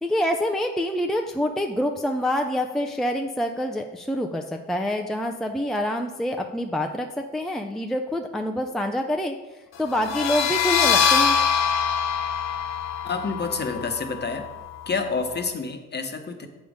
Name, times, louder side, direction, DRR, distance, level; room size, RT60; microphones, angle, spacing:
voice 1, 0.0-11.4, left 1 dB, ahead, 3 dB, 0.5 m, -26 dB
sound 1, 10.0-15.4, left 7 dB, 60° left, 0.9 m, -24 dB
voice 2, 13.0-14.5 14.9-16.5, left 4 dB, 35° left, 6 dB, 1.0 m, -28 dB
7.3 x 5.4 x 5.0 m, 1.1 s
cardioid pair, 90°, 30 cm